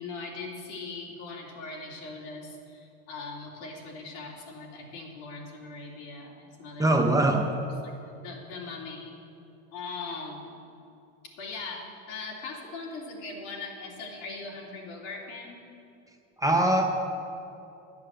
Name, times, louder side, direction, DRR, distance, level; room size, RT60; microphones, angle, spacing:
voice 1, 0.0-7.0 7.3-9.1 9.7-10.5 11.4-15.6, left 3 dB, 70° left, -2 dB, 3.1 m, -40 dB
voice 2, 6.8-7.4 16.4-16.8, right 1 dB, 10° right, 2 dB, 0.4 m, -22 dB
12.5 x 8.5 x 7.6 m, 2.7 s
cardioid pair, 160°, 39 cm